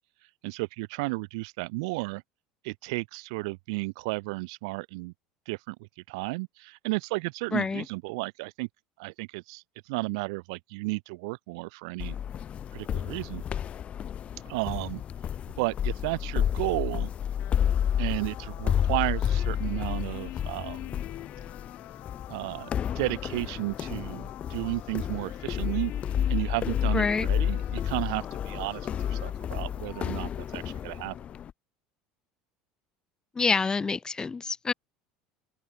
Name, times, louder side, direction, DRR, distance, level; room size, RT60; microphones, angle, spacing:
voice 1, 0.4-2.2 2.6-5.1 5.5-5.8 6.1-8.7 9.0-12.2 12.7-13.4 14.4-15.0 15.6-17.1 18.0-20.9 22.3-22.7 22.9-25.9 26.3-31.1, right 26 dB, 70° right, 3.1 m, -33 dB
voice 2, 7.5-7.8 26.9-27.3 33.3-34.7, left 4 dB, 25° left, 1.5 m, -27 dB
sound 1, 12.0-31.5, left 9 dB, 40° left, 0.5 m, -31 dB
sound 2, 17.4-29.3, left 18 dB, 60° left, 4.2 m, -46 dB
open air
hypercardioid pair, 75°, 3 cm